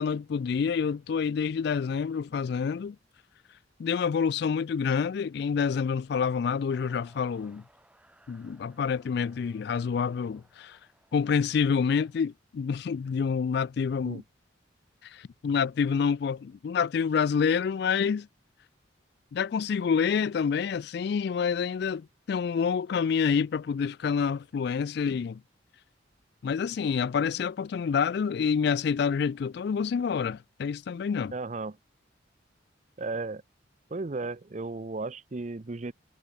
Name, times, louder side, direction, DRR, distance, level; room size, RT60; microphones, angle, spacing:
voice 1, 0.0-3.0 3.8-7.6 8.3-10.8 11.1-14.2 15.0-18.3 19.3-25.4 26.4-31.3, left 6 dB, 55° left, 0.3 m, -27 dB
sound 1, 6.7-12.3, right 1 dB, 5° right, 2.0 m, -63 dB
voice 2, 31.3-31.8 33.0-33.4 33.9-35.9, right 3 dB, 35° right, 0.6 m, -34 dB
head